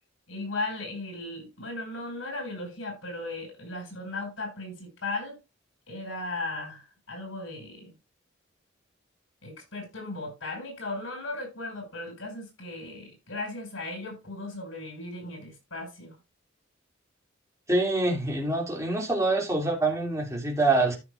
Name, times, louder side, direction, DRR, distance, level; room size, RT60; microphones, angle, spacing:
voice 1, 0.3-5.4 5.9-7.9 9.4-16.2, left 2 dB, 90° left, 6.0 m, -36 dB
voice 2, 17.7-21.0, right 2 dB, 15° right, 2.6 m, -25 dB
13.5 x 6.4 x 2.5 m
head